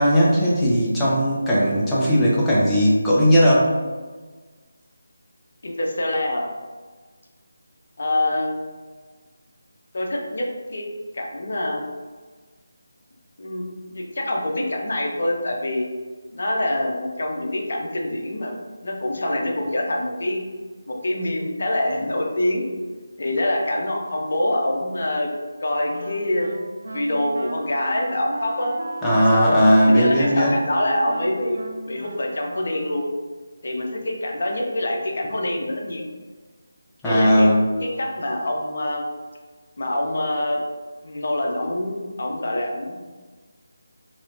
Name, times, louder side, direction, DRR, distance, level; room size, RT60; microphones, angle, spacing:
voice 1, 0.0-3.8 29.0-30.6 37.0-37.7, equal, 5° left, -8 dB, 0.6 m, -17 dB
voice 2, 5.6-6.5 8.0-8.6 9.9-10.9 11.1-11.8 13.4-13.7 13.9-15.9 16.3-18.5 18.8-20.4 20.9-22.7 23.2-25.3 25.6-26.5 26.9-28.7 29.3-31.6 31.9-33.1 33.6-36.0 37.0-37.5 37.8-39.0 39.8-40.6 41.0-43.0, left 1 dB, 50° left, 0 dB, 0.7 m, -25 dB
Wind instrument woodwind instrument, 25.9-33.3, right 2 dB, 55° right, 0.3 m, -37 dB
4.1 x 2.9 x 2.6 m, 1.4 s
figure-of-eight pair, 155°, 0 cm